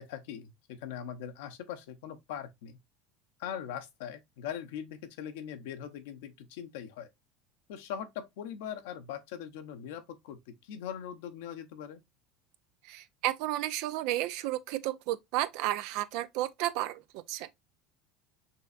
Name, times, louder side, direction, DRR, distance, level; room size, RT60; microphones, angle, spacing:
voice 1, 0.0-2.8 3.4-7.1 7.7-12.0, left 9 dB, 70° left, 0.8 m, -41 dB
voice 2, 12.8-17.6, right 15 dB, 65° right, 0.4 m, -32 dB
5.5 x 3.1 x 2.4 m
hypercardioid pair, 80°, 0 cm